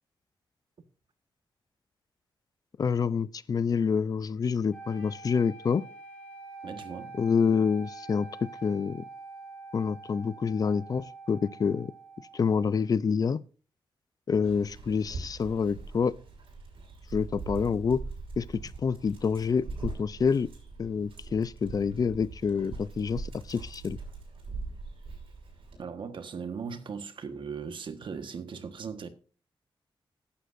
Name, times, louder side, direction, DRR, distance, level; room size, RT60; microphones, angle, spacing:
voice 1, 2.8-5.8 7.2-9.0 9.7-11.9 12.3-13.4 14.3-16.2 17.1-18.0 18.4-18.5 18.8-20.5 20.8-24.0, left 6 dB, 45° left, 0.5 m, -27 dB
sound 1, 4.7-12.8, right 3 dB, 10° left, 3.5 m, -46 dB
voice 2, 6.6-7.2 25.8-29.1, right 6 dB, 65° right, 1.4 m, -38 dB
Dog, 14.4-25.8, right 3 dB, 80° right, 6.4 m, -42 dB
14.5 x 11.5 x 2.6 m
wide cardioid pair, 145°, 9 cm